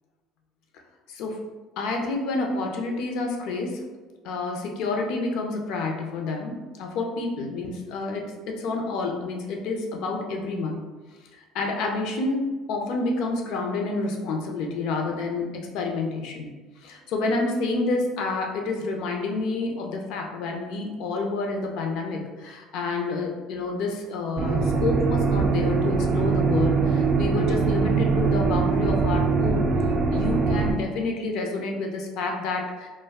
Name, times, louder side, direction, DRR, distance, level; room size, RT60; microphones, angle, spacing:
voice 1, 1.1-1.4 1.8-3.8 4.2-10.8 11.3-16.5 16.8-29.7 30.1-32.9, left 3 dB, 70° left, 2 dB, 0.5 m, -29 dB
sound 1, 24.4-30.7, right 4 dB, 45° right, 0.4 m, -22 dB
2.2 x 2.2 x 3.4 m, 1.3 s
cardioid pair, 120°, 0 cm